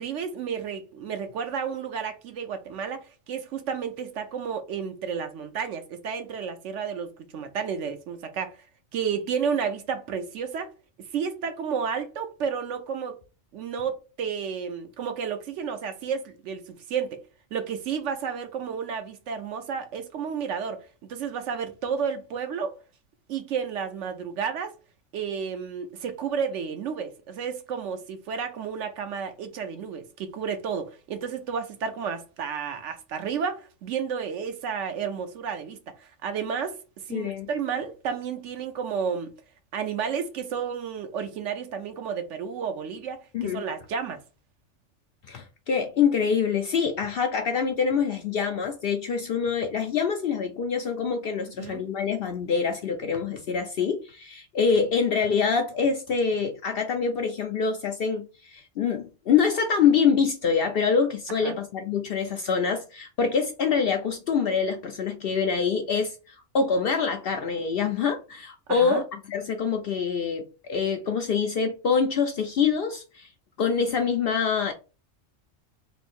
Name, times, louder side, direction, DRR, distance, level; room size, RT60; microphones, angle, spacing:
voice 1, 0.0-8.6 8.9-10.7 11.1-13.2 13.5-17.2 17.5-22.7 23.3-24.7 25.1-36.8 37.1-39.3 39.7-44.2 51.6-51.8 61.3-61.6 68.7-69.0, right 6 dB, 70° right, 1.0 m, -31 dB
voice 2, 37.1-37.5 43.3-43.6 45.3-73.3 73.6-74.7, left 6 dB, 65° left, 0.6 m, -25 dB
3.1 x 2.6 x 4.2 m
omnidirectional pair, 1.3 m